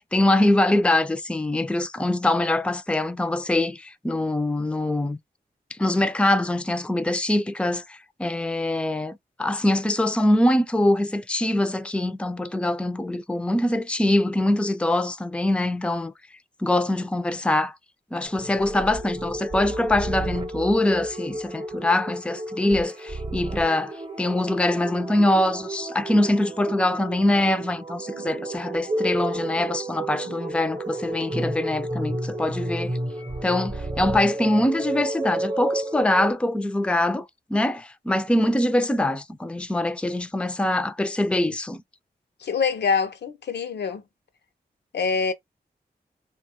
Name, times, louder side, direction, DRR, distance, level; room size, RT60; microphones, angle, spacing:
voice 1, 0.0-5.2 5.8-16.1 16.6-17.8 18.1-33.0 33.4-41.8, left 1 dB, 5° left, 0.4 m, -23 dB
sound 1, 18.3-36.3, right 1 dB, 25° right, 0.8 m, -31 dB
voice 2, 42.4-44.0 44.9-45.3, left 5 dB, 75° left, 0.6 m, -25 dB
3.0 x 2.3 x 2.8 m
cardioid pair, 45°, 17 cm